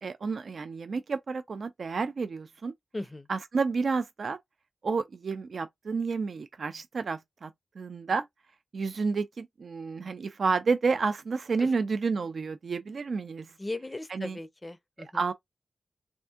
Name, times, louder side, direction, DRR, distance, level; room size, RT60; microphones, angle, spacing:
voice 1, 0.0-2.7 3.3-4.4 4.8-7.5 7.8-8.3 8.7-13.6 14.1-14.4 15.0-15.3, right 4 dB, 65° right, 0.4 m, -30 dB
voice 2, 2.9-3.3 11.6-11.7 13.6-15.3, left 2 dB, 20° left, 0.4 m, -38 dB
3.4 x 2.6 x 3.4 m
wide cardioid pair, 110°, 0 cm